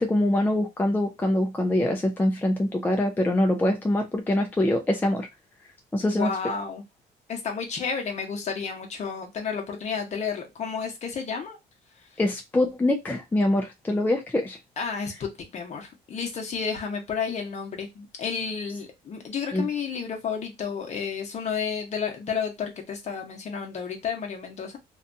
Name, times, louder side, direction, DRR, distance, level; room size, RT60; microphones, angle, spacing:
voice 1, 0.0-5.3 5.9-6.3 12.2-14.6 19.5-19.6, left 1 dB, 10° left, 0.4 m, -24 dB
voice 2, 6.0-6.8 7.3-11.6 14.8-24.8, left 6 dB, 40° left, 0.9 m, -31 dB
2.6 x 2.3 x 2.6 m
cardioid pair, 110°, 17 cm